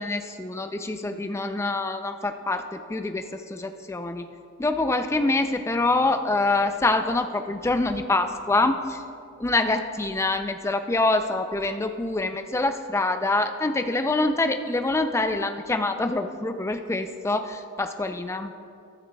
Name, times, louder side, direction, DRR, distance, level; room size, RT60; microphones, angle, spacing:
voice 1, 0.0-4.3 4.6-9.0 9.4-18.5, left 2 dB, 10° left, 8 dB, 0.3 m, -25 dB
14.0 x 12.0 x 2.3 m, 2.5 s
head